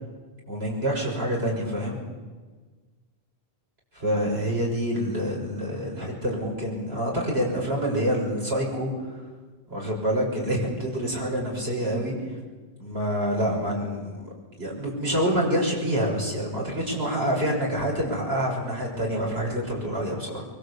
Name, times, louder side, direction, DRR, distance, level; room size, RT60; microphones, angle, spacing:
voice 1, 0.5-2.0 3.9-9.2 9.7-12.2 12.8-14.3 14.6-20.5, equal, 75° right, -2 dB, 7.0 m, -27 dB
25.5 x 23.5 x 8.5 m, 1.4 s
omnidirectional pair, 1.1 m